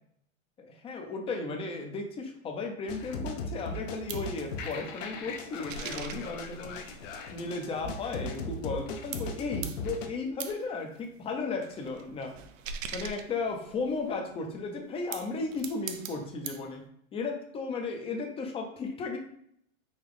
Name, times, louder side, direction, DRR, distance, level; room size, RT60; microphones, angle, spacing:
voice 1, 0.6-6.8 7.3-12.4 12.9-16.8 17.1-19.2, left 3 dB, 15° left, 4 dB, 0.5 m, -35 dB
sound 1, 2.9-10.1, left 3 dB, 65° left, 0.7 m, -38 dB
sound 2, 3.7-8.9 9.1-14.1 14.8-16.7, right 7 dB, 70° right, 0.6 m, -43 dB
3.9 x 2.3 x 3.4 m, 0.69 s
hypercardioid pair, 115°, 40 cm